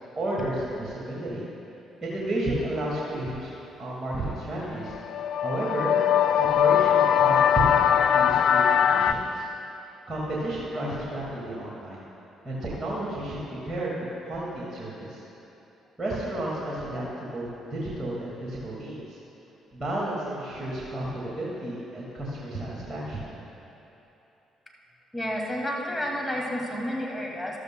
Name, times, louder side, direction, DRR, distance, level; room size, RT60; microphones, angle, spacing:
voice 1, 0.2-1.5 2.0-4.9 5.4-6.0 6.4-9.4 10.1-12.0 12.4-15.2 16.0-19.2 19.7-23.2, right 1 dB, 35° right, -6 dB, 2.0 m, -32 dB
sound 1, 4.9-9.1, left 9 dB, 60° left, 0.3 m, -21 dB
voice 2, 25.1-27.6, equal, 15° left, -1 dB, 2.2 m, -30 dB
14.0 x 12.5 x 2.2 m, 3.0 s
hypercardioid pair, 45°, 0 cm